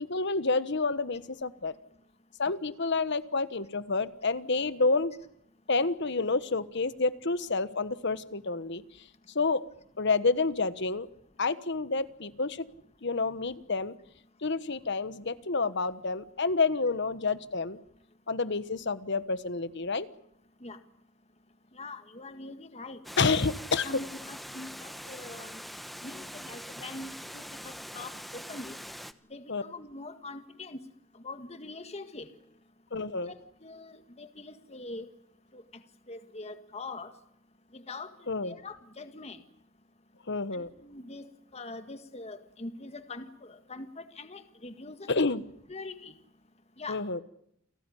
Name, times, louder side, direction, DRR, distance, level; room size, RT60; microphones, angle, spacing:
voice 1, 0.0-1.7 2.4-5.1 5.7-8.8 9.3-9.6 10.0-11.1 11.4-12.6 13.0-13.9 14.4-17.8 18.3-20.1 23.2-23.9 29.5-29.6 32.9-33.3 38.3-38.5 40.3-40.7 45.1-45.4 46.9-47.2, left 3 dB, 60° left, 15 dB, 1.3 m, -29 dB
voice 2, 21.7-23.0 23.8-25.6 26.0-28.8 29.3-30.8 31.1-32.3 33.2-33.3 33.6-35.1 35.5-35.8 36.1-37.1 37.7-39.4 40.5-45.3 45.7-46.1 46.8-47.0, left 2 dB, 30° left, 9 dB, 1.7 m, -43 dB
Water, 23.0-29.1, equal, ahead, 1.0 m, -43 dB
29.5 x 18.5 x 10.0 m, 0.73 s
head